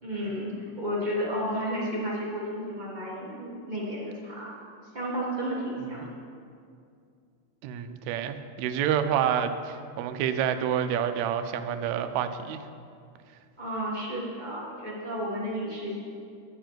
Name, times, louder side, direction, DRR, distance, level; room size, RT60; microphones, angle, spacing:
voice 1, 0.0-4.5 4.9-6.1 13.6-16.0, equal, 55° right, -6 dB, 0.5 m, -32 dB
voice 2, 7.6-12.6, right 9 dB, 80° right, 9 dB, 1.7 m, -28 dB
11.0 x 4.6 x 7.6 m, 2.4 s
omnidirectional pair, 3.5 m